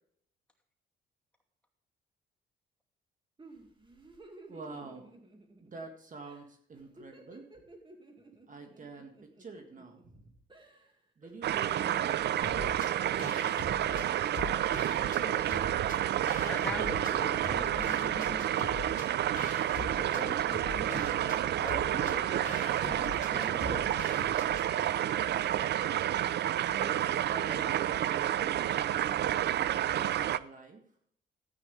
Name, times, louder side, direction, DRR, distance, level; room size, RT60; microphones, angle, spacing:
sound 1, 3.4-5.9 6.2-6.4 6.7-10.2 10.5-10.9 11.2-15.3 15.5-15.7 16.2-20.3 20.8-21.2, right 2 dB, 25° right, 2.2 m, -54 dB
voice 1, 4.5-5.1 5.6-7.5 8.5-10.3 11.2-12.8 26.6-30.8, right 4 dB, 40° right, 4 dB, 1.9 m, -47 dB
sound 2, 11.4-30.4, right 11 dB, 60° right, 0.5 m, -30 dB
sound 3, 12.4-12.9 13.2-15.2 15.5-17.1 17.4-24.7, left 4 dB, 40° left, 2.9 m, -43 dB
voice 2, 15.0-15.6 16.4-18.8 19.7-24.0, left 1 dB, 5° left, 1 dB, 2.5 m, -43 dB
14.0 x 8.8 x 3.4 m, 0.65 s
cardioid pair, 90°, 20 cm